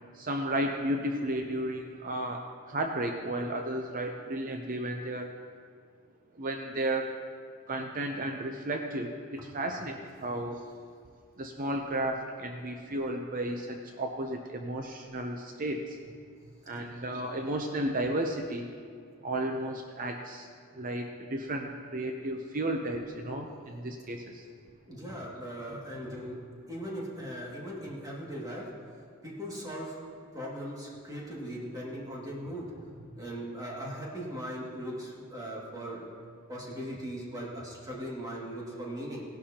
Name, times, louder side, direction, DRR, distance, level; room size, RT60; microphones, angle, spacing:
voice 1, 0.1-5.3 6.4-7.1 7.7-10.6 11.4-16.0 16.7-18.7 19.2-20.5 20.7-24.4, right 1 dB, 40° right, 4 dB, 0.6 m, -33 dB
voice 2, 24.9-26.4 26.7-28.7 29.2-30.0 30.3-36.1 36.5-39.2, equal, 15° right, -4 dB, 2.2 m, -39 dB
18.0 x 11.5 x 2.9 m, 2.1 s
head